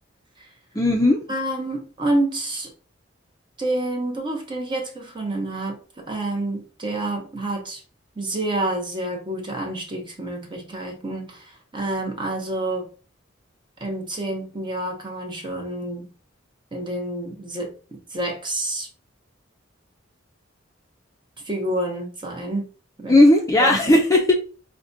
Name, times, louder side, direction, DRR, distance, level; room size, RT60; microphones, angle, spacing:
voice 1, 0.7-1.2 23.1-24.3, left 1 dB, 15° left, 0.4 m, -16 dB
voice 2, 1.3-2.7 3.6-7.8 8.2-12.9 13.8-16.1 16.7-18.9 21.4-22.7 23.0-23.2 23.6-23.8, right 1 dB, 25° right, 0.7 m, -28 dB
4.7 x 2.1 x 2.6 m
head